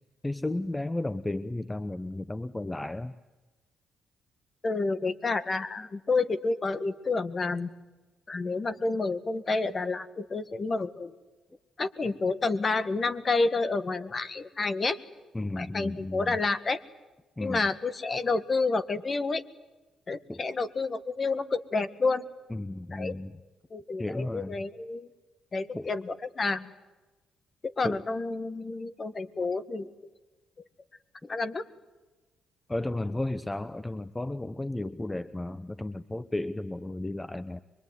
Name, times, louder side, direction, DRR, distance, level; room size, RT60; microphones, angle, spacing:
voice 1, 0.2-3.1 15.3-16.4 17.4-17.7 20.3-20.4 22.5-23.4 24.0-24.6 25.7-25.9 27.8-28.0 31.2-31.4 32.7-37.6, left 2 dB, 15° left, 13 dB, 0.8 m, -33 dB
voice 2, 4.6-7.7 8.3-11.1 11.8-15.0 15.6-16.8 17.4-19.4 20.1-22.2 22.9-23.1 23.7-25.1 25.5-26.7 27.8-30.1 31.3-31.6, left 3 dB, 35° left, 11 dB, 1.8 m, -29 dB
24.0 x 23.0 x 9.6 m, 1.1 s
cardioid pair, 90°, 0 cm